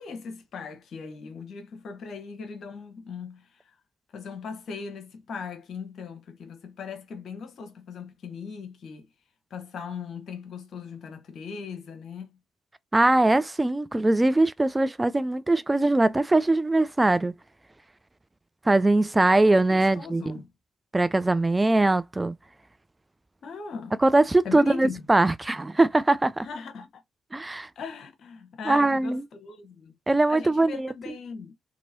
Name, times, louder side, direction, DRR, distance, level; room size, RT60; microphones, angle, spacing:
voice 1, 0.0-3.8 4.1-9.1 9.5-12.4 19.4-20.5 23.4-24.0 24.4-25.1 26.4-27.0 27.8-29.9 30.3-31.5, left 5 dB, 60° left, 0.9 m, -39 dB
voice 2, 12.9-17.3 18.7-20.4 20.9-22.3 24.0-26.5 27.3-27.7 28.7-29.2 30.1-30.9, right 2 dB, 20° right, 0.3 m, -21 dB
2.9 x 2.7 x 2.6 m
hypercardioid pair, 40°, 0 cm